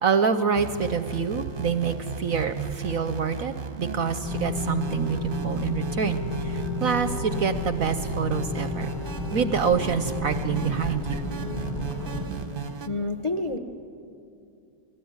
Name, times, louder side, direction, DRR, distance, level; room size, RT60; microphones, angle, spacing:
voice 1, 0.0-8.9 9.3-11.2, right 6 dB, 60° right, 11 dB, 1.0 m, -26 dB
sound 1, 0.5-12.9, right 5 dB, 35° right, 1.0 m, -36 dB
sound 2, 4.2-12.3, left 1 dB, 65° left, 5.0 m, -31 dB
voice 2, 12.9-13.6, left 2 dB, 20° left, 6 dB, 0.8 m, -28 dB
28.0 x 18.5 x 9.6 m, 2.5 s
omnidirectional pair, 2.0 m